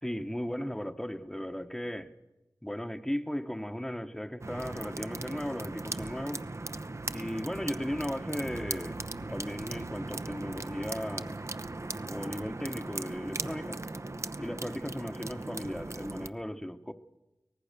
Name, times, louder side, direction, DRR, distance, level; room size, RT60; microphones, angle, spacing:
voice 1, 0.0-2.1 2.6-6.4 7.1-11.4 12.1-13.8 14.4-16.9, equal, 5° left, 1.1 m, -36 dB
sound 1, 4.4-16.3, right 2 dB, 40° right, 0.9 m, -38 dB
24.0 x 18.5 x 6.8 m
wide cardioid pair, 50°, 7 cm